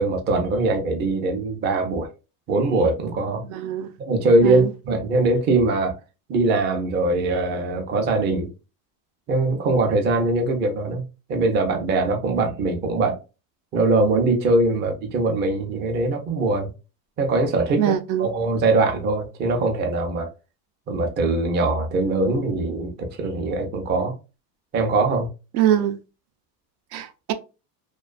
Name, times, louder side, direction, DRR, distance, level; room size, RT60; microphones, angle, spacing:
voice 1, 0.0-2.1 2.5-3.4 4.0-6.0 6.3-8.5 9.3-11.0 11.3-13.2 13.7-16.7 17.2-17.9 18.2-20.3 20.9-24.1 24.7-25.3, right 2 dB, 25° right, 0.4 m, -22 dB
voice 2, 3.5-3.9 4.4-4.7 17.8-18.3 25.5-26.0 26.9-27.3, right 10 dB, 85° right, 0.6 m, -22 dB
2.4 x 2.3 x 2.3 m
supercardioid pair, 130°, 49 cm